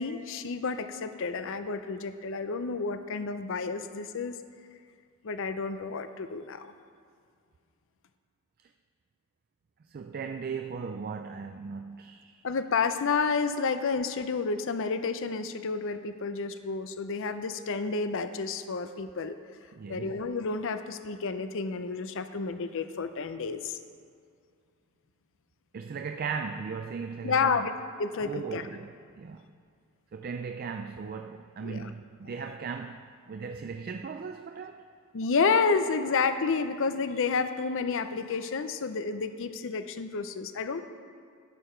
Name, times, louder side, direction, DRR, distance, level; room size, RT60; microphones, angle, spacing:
voice 1, 0.0-4.4 5.2-6.7 12.4-19.4 19.9-23.8 27.2-27.7 28.0-28.7 31.6-31.9 35.1-40.8, left 4 dB, 60° left, 0.5 m, -30 dB
voice 2, 9.9-12.4 19.7-20.1 25.7-27.7 28.2-29.5 30.1-34.9, right 5 dB, 40° right, 0.3 m, -37 dB
11.5 x 8.5 x 4.4 m
head